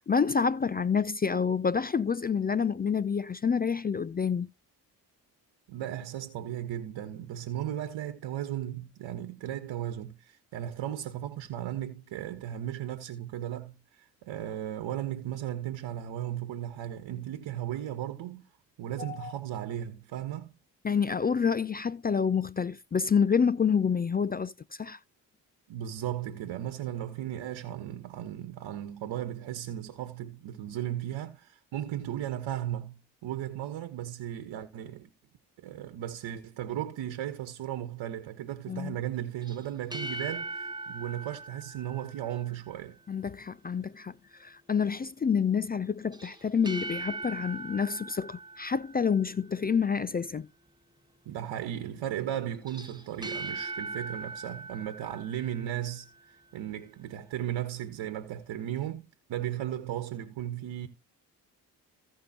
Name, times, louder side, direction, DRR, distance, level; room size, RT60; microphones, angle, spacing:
voice 1, 0.0-4.5 19.0-19.3 20.8-25.0 38.7-39.0 43.1-50.5, left 6 dB, 20° left, 0.4 m, -28 dB
voice 2, 5.7-18.4 18.8-20.5 25.7-35.1 35.6-43.0 51.2-56.1 56.5-60.9, right 11 dB, 60° right, 1.3 m, -36 dB
sound 1, 39.4-42.7 46.1-49.4 52.5-56.1, right 2 dB, 10° right, 1.5 m, -40 dB
16.5 x 5.5 x 2.9 m
hypercardioid pair, 40°, 48 cm